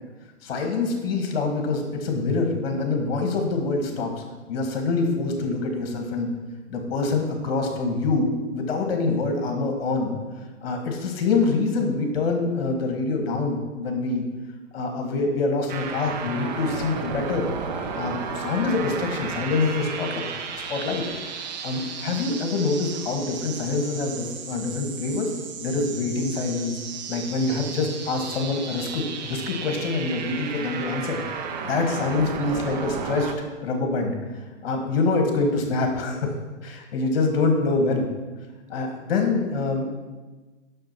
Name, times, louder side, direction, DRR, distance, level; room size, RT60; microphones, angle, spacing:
voice 1, 0.4-6.3 6.7-10.2 10.6-14.3 14.7-17.4 18.0-20.3 20.7-21.0 21.6-25.3 25.6-26.8 27.1-31.2 31.6-33.3 33.6-34.2 34.6-36.3 36.6-38.1 38.7-39.9, left 3 dB, 50° left, 4 dB, 1.7 m, -25 dB
sound 1, 15.7-33.3, right 6 dB, 35° right, 0.7 m, -34 dB
6.5 x 6.2 x 5.8 m, 1.3 s
hypercardioid pair, 150°, 37 cm